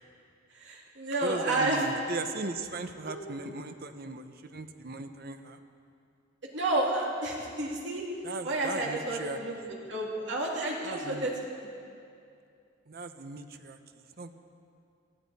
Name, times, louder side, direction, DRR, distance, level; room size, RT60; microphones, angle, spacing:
voice 1, 0.5-1.8 3.0-3.3 6.5-8.1 8.4-9.5 9.9-11.3, right 2 dB, 65° right, -2 dB, 2.6 m, -30 dB
voice 2, 1.2-5.6 8.2-9.7 10.8-11.3 12.9-14.3, right 2 dB, 50° right, 8 dB, 0.8 m, -38 dB
18.5 x 13.5 x 4.2 m, 2.5 s
head